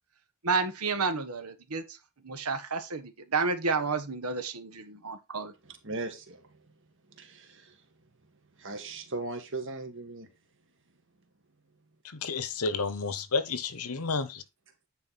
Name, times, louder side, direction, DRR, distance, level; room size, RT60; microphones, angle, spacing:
voice 1, 0.4-2.0 2.2-5.5, right 4 dB, 85° right, 1.4 m, -31 dB
voice 2, 5.6-6.6 7.1-7.8 8.6-10.3, right 3 dB, 55° right, 1.9 m, -38 dB
voice 3, 12.0-14.4, left 4 dB, 85° left, 1.0 m, -31 dB
9.6 x 4.7 x 4.1 m
head